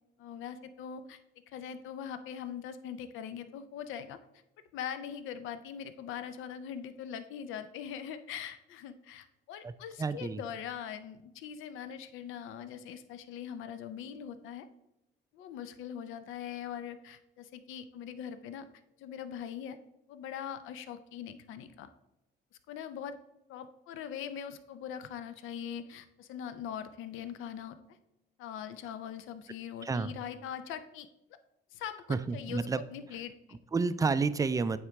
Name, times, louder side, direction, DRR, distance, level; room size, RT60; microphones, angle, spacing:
voice 1, 0.2-1.2 1.5-4.2 4.7-14.7 15.3-18.7 19.0-19.8 20.1-21.9 22.7-23.2 23.5-27.8 28.4-31.1 31.7-33.6, left 8 dB, 85° left, 11 dB, 0.5 m, -42 dB
voice 2, 10.0-10.4 29.8-30.2 32.1-32.8 33.7-34.8, right 4 dB, 15° right, 13 dB, 0.3 m, -30 dB
8.8 x 3.7 x 3.4 m, 0.91 s
cardioid pair, 90°, 20 cm